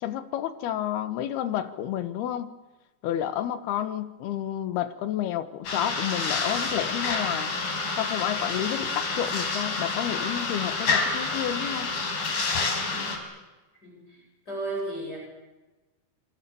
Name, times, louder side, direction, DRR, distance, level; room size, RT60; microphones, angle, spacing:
voice 1, 0.0-2.5 3.0-7.5 8.0-11.9, left 11 dB, 85° left, 11 dB, 3.3 m, -30 dB
sound 1, 5.7-13.2, left 3 dB, 70° left, 5.9 m, -28 dB
voice 2, 14.5-15.2, right 2 dB, 25° left, -3 dB, 8.5 m, -33 dB
26.5 x 26.5 x 7.1 m, 1.1 s
omnidirectional pair, 4.4 m